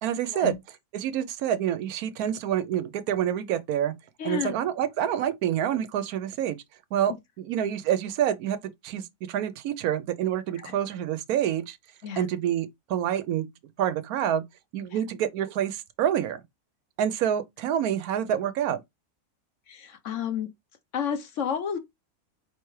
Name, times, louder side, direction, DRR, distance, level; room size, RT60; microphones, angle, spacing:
voice 1, 0.0-0.5 0.9-3.9 4.2-6.6 6.9-11.8 12.2-13.5 13.8-14.4 14.7-16.4 17.0-18.8, right 10 dB, 80° right, 1.1 m, -27 dB
voice 2, 4.2-4.6 10.5-10.7 12.0-12.2 14.9-15.0 19.7-20.5 20.9-21.8, left 8 dB, 60° left, 1.0 m, -31 dB
4.6 x 3.3 x 3.1 m
omnidirectional pair, 1.5 m